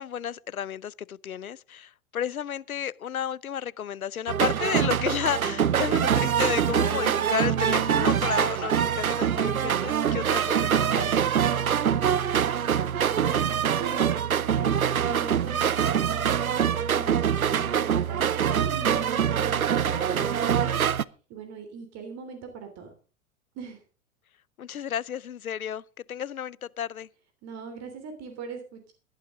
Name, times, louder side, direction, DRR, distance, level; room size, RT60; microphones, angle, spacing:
voice 1, 0.0-11.2 24.6-25.8 26.1-27.1, left 9 dB, 90° left, 0.6 m, -32 dB
sound 1, 4.3-21.0, right 8 dB, 90° right, 0.7 m, -24 dB
voice 2, 13.1-14.3 14.6-22.9 23.5-23.8 27.4-28.9, right 6 dB, 40° right, 3.2 m, -40 dB
16.5 x 12.0 x 3.7 m
figure-of-eight pair, 95°, 41 cm